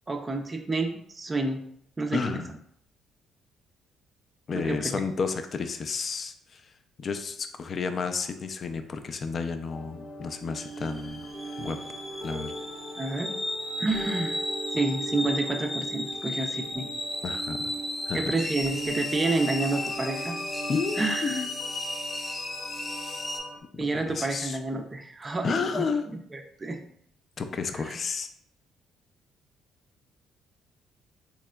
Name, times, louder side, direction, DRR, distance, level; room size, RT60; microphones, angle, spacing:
voice 1, 0.1-1.6 2.0-2.4 4.5-4.9 13.0-13.4 13.8-14.4 14.7-16.9 18.1-20.4 21.0-21.4 23.8-26.8 27.7-28.0, right 3 dB, 25° right, 4 dB, 0.4 m, -29 dB
voice 2, 2.1-2.5 4.5-6.7 7.0-11.3 11.6-11.8 12.2-12.5 17.2-17.7 18.1-18.2 20.7-21.5 23.7-24.6 25.4-26.0 27.4-28.3, left 5 dB, 45° left, 8 dB, 0.3 m, -31 dB
sound 1, 9.7-23.6, right 1 dB, 65° left, 0.7 m, -39 dB
sound 2, 10.6-23.4, left 1 dB, 20° left, 0.7 m, -34 dB
3.3 x 2.8 x 2.2 m, 0.69 s
cardioid pair, 85°, 0 cm